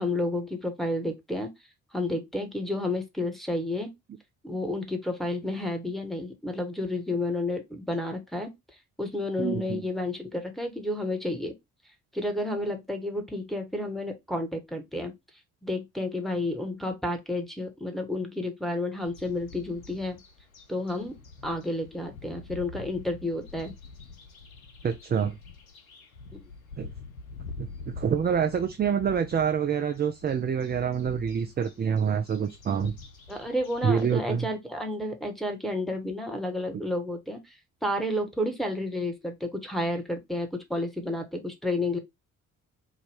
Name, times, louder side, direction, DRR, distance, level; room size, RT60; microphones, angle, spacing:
voice 1, 0.0-1.5 1.9-3.9 4.4-8.5 9.0-11.5 12.1-15.1 15.6-20.2 20.7-21.1 21.4-23.7 26.3-26.4 33.3-37.6 37.8-42.0, left 1 dB, ahead, 1.4 m, -31 dB
voice 2, 9.4-9.9 24.8-25.3 26.8-26.9 27.6-27.7 28.0-32.9 33.8-34.5, right 7 dB, 25° right, 0.5 m, -26 dB
sound 1, 19.0-34.2, left 4 dB, 85° left, 0.7 m, -46 dB
4.8 x 2.5 x 3.4 m
figure-of-eight pair, 45°, 41 cm